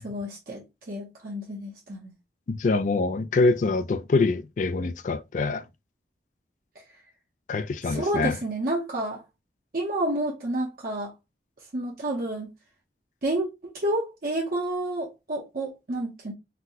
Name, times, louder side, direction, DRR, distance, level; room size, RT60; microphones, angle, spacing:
voice 1, 0.0-2.1 7.8-9.2 9.7-11.1 11.7-12.5 13.2-16.3, right 1 dB, 50° right, 0.7 m, -30 dB
voice 2, 2.5-5.6 7.5-8.4, left 3 dB, 45° left, 0.3 m, -25 dB
4.0 x 2.1 x 2.8 m
head